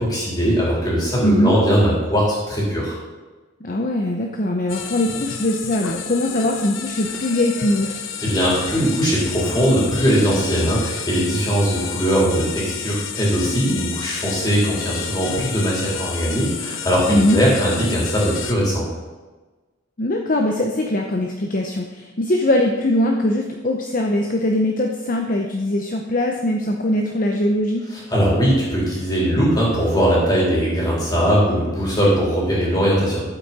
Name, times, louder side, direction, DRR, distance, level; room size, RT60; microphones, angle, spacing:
voice 1, 0.0-3.0 8.2-18.8 27.9-33.2, equal, 20° left, -5 dB, 3.7 m, -20 dB
voice 2, 1.2-1.5 3.6-7.9 17.1-17.4 20.0-27.8, left 1 dB, 40° left, 2 dB, 0.8 m, -21 dB
sound 1, 4.7-18.5, left 7 dB, 75° left, 0.9 m, -31 dB
12.0 x 8.3 x 4.2 m, 1.3 s
head